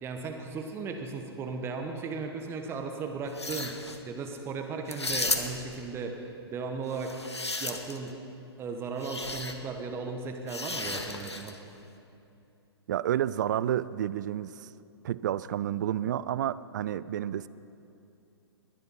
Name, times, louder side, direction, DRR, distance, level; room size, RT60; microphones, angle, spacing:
voice 1, 0.0-3.8 4.1-6.2 6.5-7.2 7.6-8.1 8.6-11.5, right 4 dB, 15° right, 4 dB, 1.1 m, -36 dB
sound 1, 3.3-4.0 4.9-5.8 6.9-8.1 9.0-9.5 10.5-11.6, left 2 dB, 80° left, 1.1 m, -34 dB
voice 2, 12.9-14.7 15.0-17.5, right 11 dB, 45° right, 18 dB, 0.4 m, -30 dB
20.0 x 10.5 x 5.6 m, 2.7 s
figure-of-eight pair, 115°, 14 cm